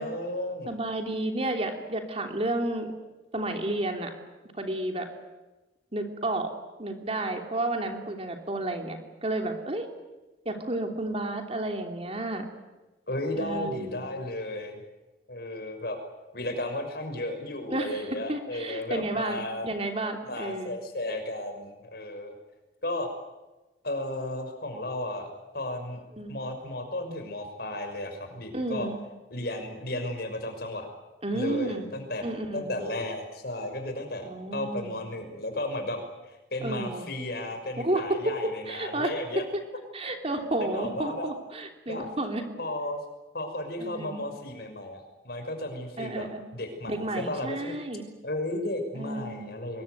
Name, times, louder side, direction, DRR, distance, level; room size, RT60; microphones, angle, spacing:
voice 1, 0.0-0.8 13.1-14.8 15.3-16.0 16.3-19.7 20.2-22.3 22.8-23.1 23.8-26.0 26.3-28.9 29.3-30.9 31.3-32.3 32.5-39.4 40.3-41.3 41.9-42.1 42.6-43.0 43.3-46.3 46.5-47.8 48.2-49.8, left 1 dB, 55° left, 6 dB, 6.0 m, -34 dB
voice 2, 0.7-2.9 3.3-4.1 4.5-5.1 5.9-6.5 6.8-9.9 10.4-12.5 13.4-14.0 17.7-20.7 26.2-26.3 28.5-29.0 31.2-31.9 32.2-32.8 34.2-34.9 36.6-37.1 37.8-39.1 39.5-39.6 39.9-42.4 43.8-44.2 46.0-46.4 46.8-48.0 48.9-49.5, right 2 dB, 30° right, 4 dB, 3.1 m, -31 dB
24.5 x 23.0 x 9.4 m, 1.1 s
head